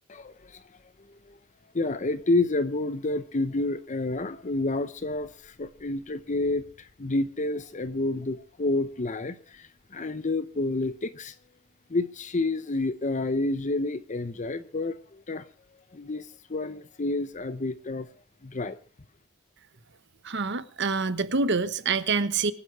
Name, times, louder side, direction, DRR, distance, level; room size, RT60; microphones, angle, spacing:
voice 1, 0.1-0.6 1.1-1.4 1.7-11.4 11.9-15.5 15.9-18.1 18.4-18.8, left 2 dB, 35° left, 0.7 m, -29 dB
voice 2, 20.2-22.5, right 4 dB, 55° right, 1.1 m, -26 dB
25.0 x 9.8 x 4.7 m
head